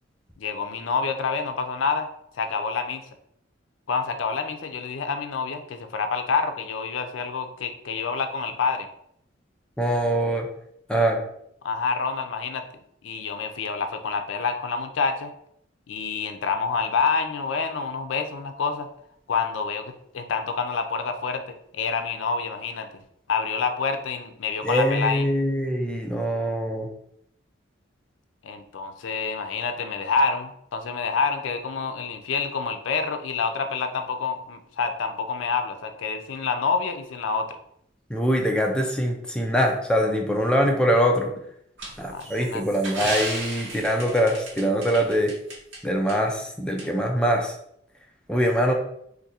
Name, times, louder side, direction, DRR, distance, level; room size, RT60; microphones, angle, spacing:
voice 1, 0.4-2.1 2.4-3.0 3.9-8.9 11.6-12.6 13.0-15.3 15.9-18.9 19.3-21.4 21.7-22.9 23.3-25.3 28.4-37.5 42.1-42.6, left 5 dB, 75° left, 6 dB, 0.4 m, -27 dB
voice 2, 9.8-10.5 10.9-11.2 24.6-26.9 38.1-41.3 42.0-45.3 45.8-47.5 48.3-48.7, equal, 5° left, 2 dB, 0.4 m, -23 dB
sound 1, 41.8-45.8 46.1-46.2 46.8-46.9, right 2 dB, 70° right, 1.0 m, -34 dB
2.6 x 2.6 x 4.1 m, 0.71 s
head